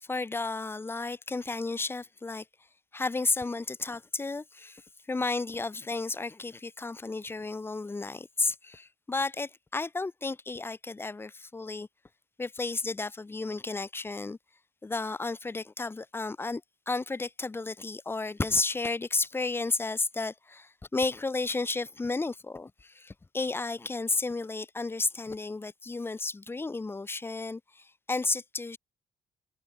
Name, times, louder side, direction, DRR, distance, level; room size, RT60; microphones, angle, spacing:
voice 1, 0.0-2.5 2.9-11.9 12.4-14.4 14.8-28.8, left 3 dB, 10° left, 0.3 m, -32 dB
cardioid pair, 90°, 20 cm